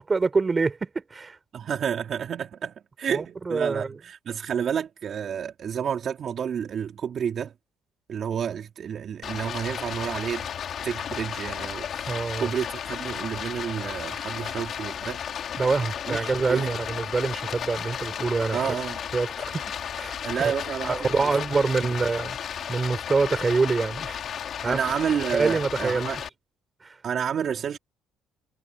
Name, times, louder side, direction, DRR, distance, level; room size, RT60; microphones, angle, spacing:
voice 1, 0.0-1.4 3.1-4.0 12.1-12.5 15.6-18.6 19.1-19.6 19.9-20.2 20.8-22.4 22.7-24.2 24.6-24.8 25.3-26.1 26.8-27.0, right 4 dB, 25° right, 4.2 m, -25 dB
voice 2, 1.5-7.5 8.1-10.4 10.8-12.1 12.4-15.2 16.1-16.2 16.5-16.8 18.5-19.0 20.2-21.1 21.6-21.7 24.6-26.2 27.0-27.8, right 8 dB, 50° right, 3.4 m, -30 dB
Stream, 9.2-26.3, left 8 dB, 55° left, 3.4 m, -34 dB
cardioid pair, 105°, 0 cm